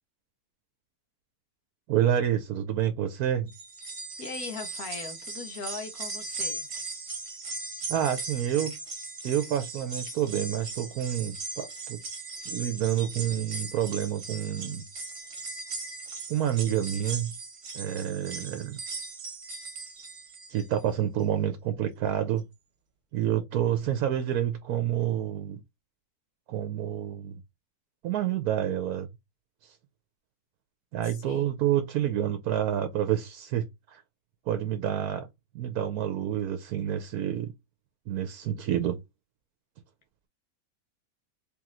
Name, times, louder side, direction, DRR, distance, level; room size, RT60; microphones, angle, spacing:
voice 1, 1.9-3.5 7.9-8.8 9.2-12.0 12.5-14.9 16.3-17.3 17.7-18.8 20.5-22.4 23.1-25.6 26.5-27.4 28.0-29.1 29.6-29.7 30.9-34.0 34.5-35.3 35.5-37.5 38.1-39.0, right 10 dB, 80° right, 1.1 m, -28 dB
sound 1, 3.5-20.8 21.2-21.3 22.4-22.5, right 3 dB, 55° right, 1.4 m, -38 dB
voice 2, 4.2-6.7 31.0-31.6, left 5 dB, 75° left, 1.4 m, -40 dB
3.3 x 3.0 x 3.7 m
omnidirectional pair, 1.6 m